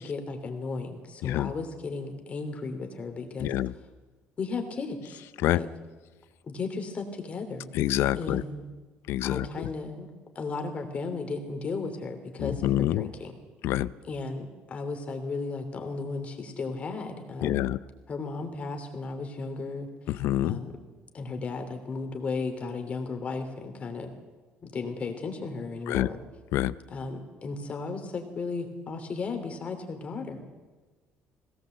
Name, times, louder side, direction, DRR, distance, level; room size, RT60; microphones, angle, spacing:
voice 1, 0.0-3.5 4.4-5.7 6.5-7.7 8.2-8.6 9.2-10.1 10.3-13.4 14.1-17.6 18.1-19.9 20.4-20.8 21.1-24.1 24.6-26.2 26.9-30.4, left 4 dB, 30° left, 5 dB, 3.1 m, -35 dB
voice 2, 3.4-3.7 5.4-5.6 7.7-8.4 9.1-9.7 12.4-13.1 13.6-13.9 17.4-17.8 20.1-20.6 25.9-26.1 26.5-26.7, left 14 dB, 75° left, 18 dB, 0.6 m, -26 dB
21.0 x 18.0 x 8.0 m, 1.3 s
cardioid pair, 155°, 4 cm